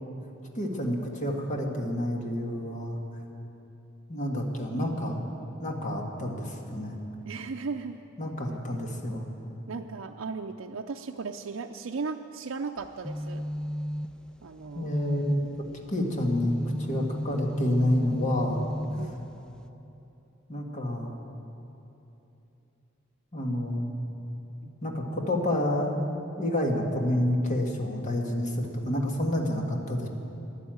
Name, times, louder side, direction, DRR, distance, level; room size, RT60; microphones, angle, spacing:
voice 1, 0.5-3.0 4.1-5.2 5.6-7.0 8.2-9.2 14.7-15.5 15.9-18.6 20.5-21.1 23.3-23.9 24.8-30.1, left 1 dB, 35° left, 1 dB, 1.7 m, -29 dB
voice 2, 7.2-8.0 9.7-13.4 14.4-15.0 18.9-19.2 24.6-24.8, right 4 dB, 70° right, 3 dB, 0.5 m, -36 dB
sound 1, 12.8-19.7, left 1 dB, 5° left, 0.4 m, -35 dB
12.5 x 11.0 x 8.9 m, 3.0 s
head